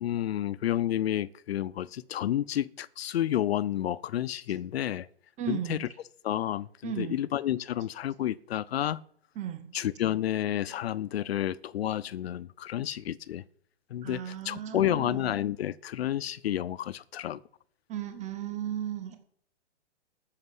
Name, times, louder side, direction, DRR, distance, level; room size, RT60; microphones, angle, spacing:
voice 1, 0.0-5.1 5.5-5.9 6.2-9.0 9.7-13.4 13.9-17.4, left 12 dB, 60° left, 0.7 m, -30 dB
voice 2, 5.4-5.8 6.8-7.2 9.3-9.7 14.0-15.3 17.9-19.2, right 11 dB, 20° right, 1.7 m, -35 dB
13.5 x 6.6 x 8.0 m
hypercardioid pair, 135°, 35 cm